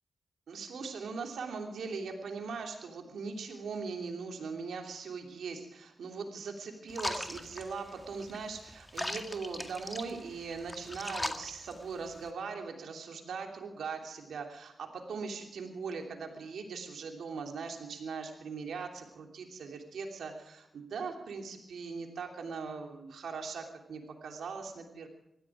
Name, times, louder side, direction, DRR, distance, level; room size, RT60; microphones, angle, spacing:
voice 1, 0.5-25.1, right 5 dB, 85° right, 3 dB, 3.0 m, -40 dB
sound 1, 6.9-12.3, left 1 dB, 20° left, 2.0 m, -40 dB
20.0 x 14.5 x 5.0 m, 0.84 s
cardioid pair, 45°, 0 cm